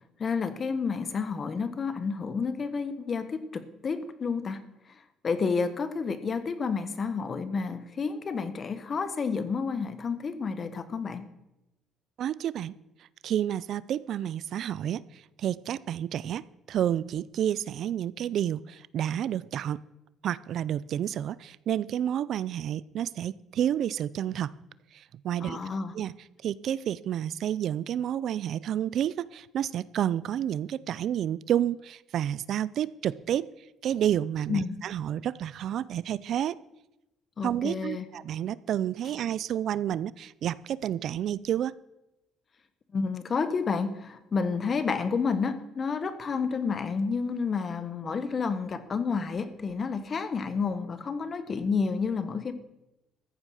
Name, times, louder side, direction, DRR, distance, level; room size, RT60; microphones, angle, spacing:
voice 1, 0.2-4.6 5.2-11.3 25.4-25.9 34.5-34.8 37.4-38.0 42.9-52.5, left 5 dB, 35° left, 12 dB, 1.2 m, -30 dB
voice 2, 12.2-12.7 13.2-15.0 15.4-16.4 16.7-19.8 20.2-24.5 24.9-25.6 25.9-26.1 26.4-33.5 33.8-36.6 37.4-41.7, right 10 dB, 60° right, 20 dB, 0.4 m, -30 dB
14.5 x 8.9 x 6.4 m, 0.93 s
cardioid pair, 130°, 0 cm